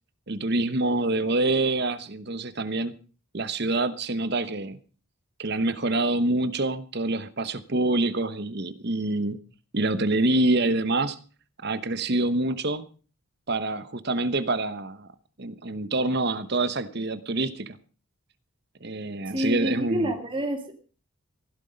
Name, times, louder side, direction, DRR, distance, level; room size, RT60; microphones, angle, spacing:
voice 1, 0.3-2.9 3.3-4.8 5.4-9.4 9.7-11.2 11.6-12.8 13.5-15.1 15.4-17.8 18.8-20.1, right 2 dB, 50° right, 1.0 m, -26 dB
voice 2, 19.2-20.7, equal, 25° right, 1.9 m, -28 dB
16.0 x 12.0 x 5.2 m
head